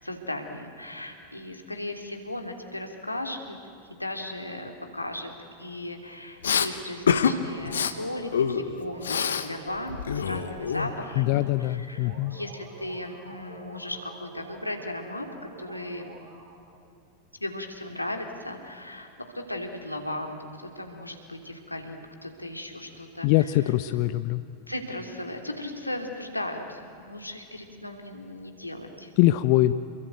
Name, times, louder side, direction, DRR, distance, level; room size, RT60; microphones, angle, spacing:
voice 1, 0.0-3.6 3.9-5.3 5.6-15.3 15.6-16.1 17.4-23.5 24.7-29.1, left 1 dB, 85° left, 4 dB, 3.0 m, -36 dB
Respiratory sounds, 6.4-6.7 7.1-7.3 7.6-7.9 8.3-9.5 9.8-11.2, left 7 dB, 65° left, 1.4 m, -26 dB
sound 1, 7.1-8.3 8.7-11.5 11.9-14.7 15.1-16.7, right 4 dB, 60° right, 7.9 m, -48 dB
voice 2, 11.2-12.4 23.2-24.4 29.2-29.7, left 16 dB, 45° left, 13 dB, 0.7 m, -23 dB
28.0 x 23.0 x 9.3 m, 2.6 s
figure-of-eight pair, 90°, 0 cm